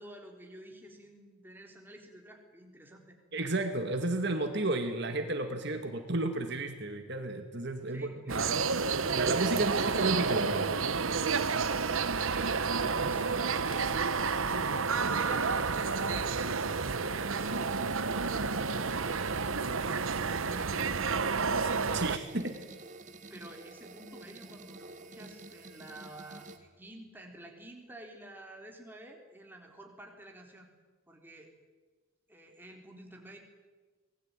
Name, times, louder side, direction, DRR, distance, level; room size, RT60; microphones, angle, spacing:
voice 1, 0.0-3.2 7.9-8.6 12.1-14.0 14.5-16.6 17.2-19.6 20.1-21.4 22.1-22.7 23.3-30.7 31.1-31.5 32.3-33.4, right 1 dB, 10° right, 1 dB, 3.9 m, -50 dB
voice 2, 3.3-8.4 9.1-10.7 21.9-22.5, right 2 dB, 50° right, 5 dB, 2.1 m, -32 dB
sound 1, 8.3-22.2, right 5 dB, 70° right, 1.1 m, -30 dB
sound 2, 8.5-26.6, right 3 dB, 35° right, 2.1 m, -51 dB
25.5 x 20.0 x 9.1 m, 1.4 s
head